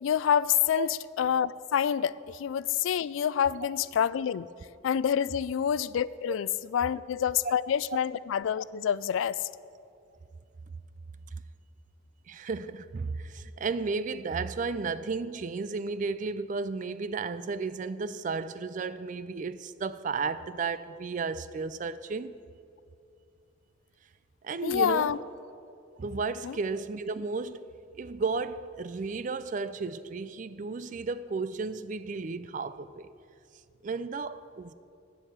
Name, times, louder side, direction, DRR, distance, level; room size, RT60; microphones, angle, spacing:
voice 1, 0.0-4.5 4.8-9.4 24.6-25.2 26.4-26.6, left 8 dB, 80° left, 0.3 m, -27 dB
voice 2, 12.3-22.4 24.4-25.2 26.0-27.7 27.9-33.1 33.8-34.7, right 4 dB, 40° right, 0.3 m, -33 dB
9.0 x 7.4 x 8.1 m
head